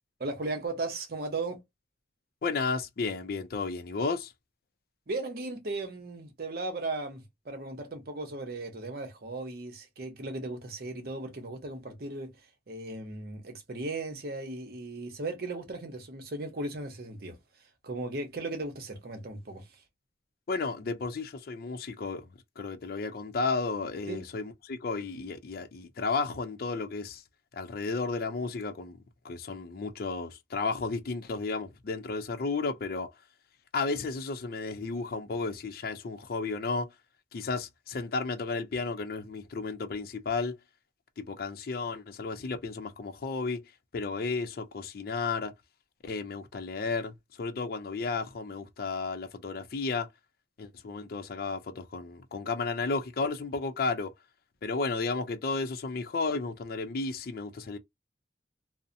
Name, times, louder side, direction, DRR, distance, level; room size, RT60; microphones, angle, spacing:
voice 1, 0.2-1.6 5.1-12.3 12.7-17.4 17.8-19.8 24.1-24.2, right 2 dB, 55° right, 0.7 m, -36 dB
voice 2, 2.4-4.3 20.5-22.3 22.6-27.2 27.5-29.0 29.2-33.1 33.7-36.9 37.3-40.6 41.2-43.6 43.9-45.5 46.0-50.1 50.6-54.1 54.6-57.8, left 4 dB, 50° left, 0.4 m, -33 dB
2.6 x 2.0 x 2.5 m
head